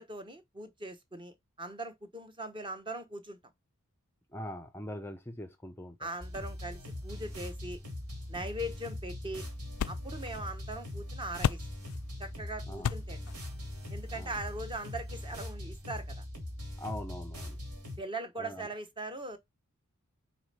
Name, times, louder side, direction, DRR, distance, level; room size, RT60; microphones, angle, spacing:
voice 1, 0.0-3.4 6.0-7.8 8.3-9.4 9.9-11.7 12.2-13.3 13.9-16.2 18.0-19.4, right 1 dB, 20° right, 0.9 m, -40 dB
voice 2, 4.3-6.1 12.7-12.9 14.2-14.3 16.8-17.6 18.4-18.7, left 1 dB, 10° left, 0.5 m, -42 dB
sound 1, 6.2-18.0, left 1 dB, 80° right, 2.8 m, -41 dB
sound 2, 8.1-15.2, left 8 dB, 70° left, 0.3 m, -40 dB
4.8 x 4.2 x 5.3 m
head